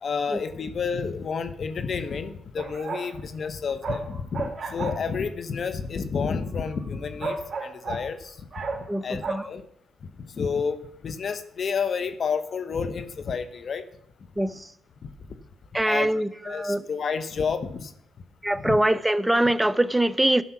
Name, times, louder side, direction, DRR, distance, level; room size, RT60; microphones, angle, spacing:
voice 1, 0.0-8.4 9.0-9.6 10.3-13.8 15.0-15.1 15.8-16.1 16.4-17.9 18.5-18.8, left 5 dB, 55° left, 0.9 m, -30 dB
sound 1, 2.6-3.2 3.4-5.1 6.7-6.8 7.2-8.1 8.5-9.0 9.2-9.3, right 4 dB, 45° right, 1.8 m, -32 dB
voice 2, 8.9-9.5 14.4-14.5 15.7-16.8 18.4-20.4, right 1 dB, 10° right, 0.5 m, -23 dB
12.0 x 5.5 x 6.0 m
supercardioid pair, 65°, 0 cm